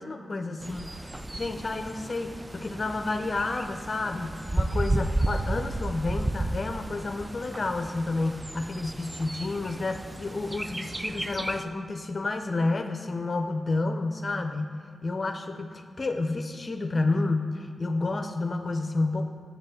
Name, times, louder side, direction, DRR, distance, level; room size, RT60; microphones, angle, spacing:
voice 1, 0.0-19.3, left 3 dB, 45° left, 6 dB, 0.5 m, -30 dB
Bird, 0.6-11.6, right 1 dB, 25° right, 0.4 m, -33 dB
7.7 x 5.3 x 7.5 m, 2.3 s
cardioid pair, 45°, 0 cm